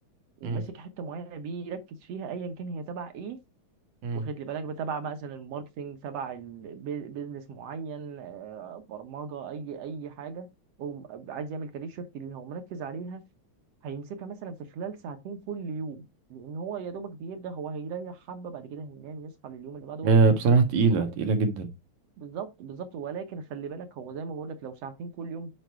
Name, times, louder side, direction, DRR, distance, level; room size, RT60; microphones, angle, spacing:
voice 1, 0.4-3.4 4.2-10.5 10.8-13.2 13.8-20.4 20.9-21.1 22.2-25.5, right 5 dB, 65° right, 2.0 m, -37 dB
voice 2, 20.0-21.7, right 4 dB, 90° right, 3.0 m, -22 dB
9.2 x 4.7 x 4.6 m
omnidirectional pair, 3.3 m